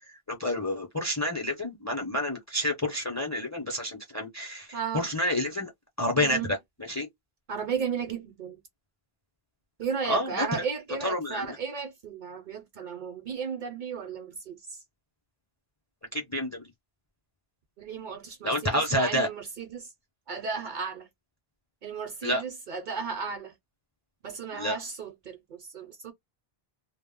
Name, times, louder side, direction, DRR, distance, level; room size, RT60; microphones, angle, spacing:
voice 1, 0.3-4.7 4.9-5.7 6.0-6.4 6.9-7.1 10.1-10.5 11.0-11.5 16.1-16.6 18.4-19.3 22.2-22.4 24.5-24.8, left 1 dB, 20° left, 0.5 m, -28 dB
voice 2, 4.7-5.1 6.1-6.5 7.5-8.6 9.8-14.8 17.8-19.9 20.3-21.1 21.8-23.5 24.2-26.1, right 6 dB, 60° right, 0.6 m, -35 dB
2.1 x 2.0 x 3.5 m
omnidirectional pair, 1.1 m